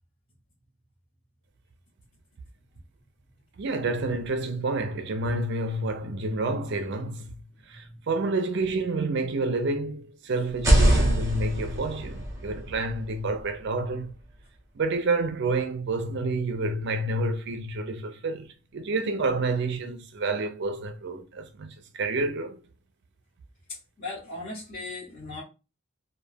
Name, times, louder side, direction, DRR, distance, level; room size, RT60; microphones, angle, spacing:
voice 1, 3.6-7.3 7.7-14.1 14.7-18.5 18.7-22.6, right 2 dB, 55° right, 0.4 m, -29 dB
voice 2, 7.7-8.1 23.7-25.4, left 2 dB, 45° left, 1.0 m, -38 dB
sound 1, 10.5-14.3, right 1 dB, 15° right, 0.8 m, -25 dB
2.2 x 2.2 x 3.3 m
head